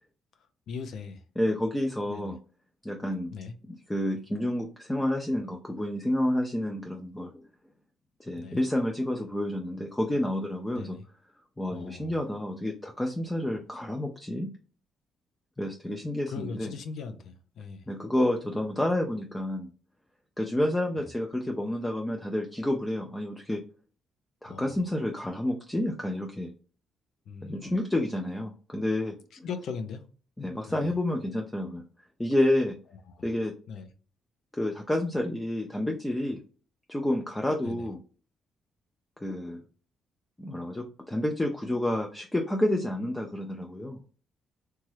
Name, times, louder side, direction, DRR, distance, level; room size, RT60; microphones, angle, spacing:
voice 1, 0.7-1.2 2.1-2.3 3.3-3.5 8.4-8.6 10.7-11.0 11.7-12.2 16.3-17.8 21.0-21.1 24.5-24.7 27.3-27.7 29.4-30.0 30.7-30.9 33.1-33.3 33.7-33.9 37.6-37.9, left 5 dB, 70° left, 0.5 m, -39 dB
voice 2, 1.4-2.4 2.8-3.4 3.7-7.4 8.2-11.0 11.6-14.5 15.6-16.7 17.9-19.7 20.4-23.6 24.4-26.5 27.4-29.5 30.4-31.9 32.2-32.8 33.2-33.5 34.5-36.4 36.9-38.0 39.2-39.6 40.4-44.0, left 1 dB, 10° left, 0.4 m, -29 dB
2.9 x 2.2 x 3.1 m
cardioid pair, 90°, 0 cm